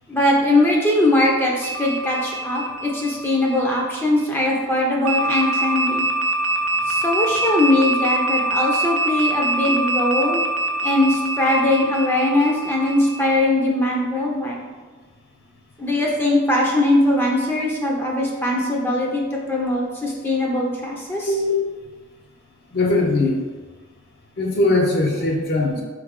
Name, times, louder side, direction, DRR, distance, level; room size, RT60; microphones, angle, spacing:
voice 1, 0.1-6.1 6.9-10.4 10.8-14.6 15.8-21.3, left 1 dB, 10° left, -3 dB, 0.5 m, -20 dB
sound 1, 1.6-4.2 5.1-13.4, right 2 dB, 75° right, 0.5 m, -24 dB
voice 2, 21.3-21.9 22.7-23.3 24.4-25.8, left 2 dB, 50° left, -1 dB, 0.7 m, -20 dB
3.9 x 3.2 x 3.6 m, 1.3 s
head